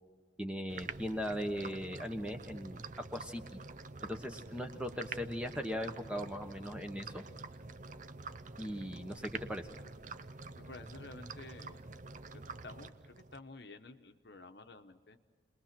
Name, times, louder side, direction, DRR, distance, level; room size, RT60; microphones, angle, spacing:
voice 1, 0.4-2.8 3.1-3.6 4.0-7.2 8.6-9.6, equal, 5° right, 5 dB, 1.2 m, -39 dB
sound 1, 0.7-13.4, right 4 dB, 40° right, 0.6 m, -47 dB
voice 2, 10.5-11.8 12.3-15.2, left 3 dB, 60° left, 7 dB, 1.1 m, -51 dB
29.5 x 21.0 x 6.0 m, 1.4 s
head